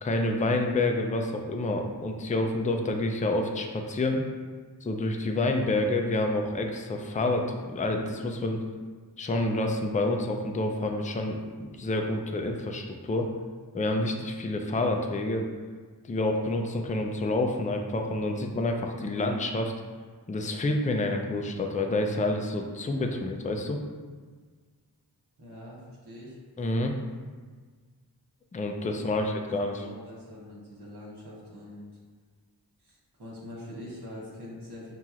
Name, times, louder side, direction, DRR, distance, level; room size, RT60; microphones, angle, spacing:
voice 1, 0.0-4.3 4.8-8.6 9.2-13.3 13.7-15.5 16.0-19.7 20.3-23.8 26.6-26.9 28.5-29.8, left 2 dB, 20° left, 3 dB, 0.4 m, -28 dB
voice 2, 25.4-26.4 29.1-32.0 32.8-35.0, left 1 dB, 70° right, -6 dB, 1.2 m, -44 dB
5.6 x 2.9 x 2.4 m, 1.5 s
wide cardioid pair, 70°, 40 cm